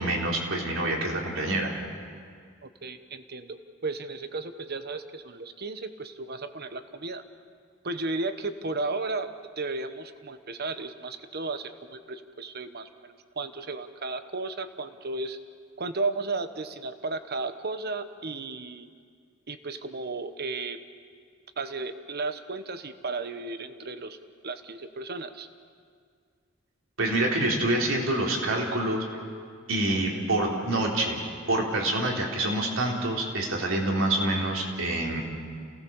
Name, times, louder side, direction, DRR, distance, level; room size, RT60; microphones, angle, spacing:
voice 1, 0.0-1.7 27.0-29.1 29.7-31.2 31.5-35.2, right 1 dB, 85° right, -1 dB, 3.8 m, -26 dB
voice 2, 2.6-7.2 7.8-9.3 9.6-15.4 15.8-18.9 19.5-20.8 21.6-24.2 24.4-25.5 29.9-30.2, right 3 dB, 50° right, 10 dB, 1.1 m, -34 dB
28.5 x 17.5 x 7.1 m, 2.1 s
head